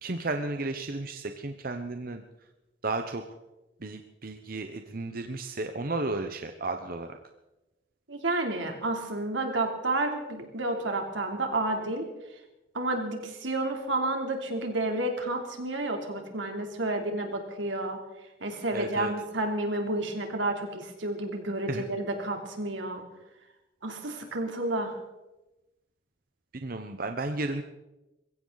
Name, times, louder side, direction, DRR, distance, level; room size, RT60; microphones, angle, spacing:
voice 1, 0.0-2.2 2.8-3.2 3.8-7.2 18.7-19.1 21.7-21.8 26.6-27.6, right 2 dB, 50° right, 6 dB, 1.0 m, -33 dB
voice 2, 8.1-12.1 12.7-18.0 18.4-23.0 23.8-25.0, right 2 dB, 85° right, 3 dB, 3.3 m, -30 dB
22.0 x 16.0 x 4.1 m, 1.0 s
head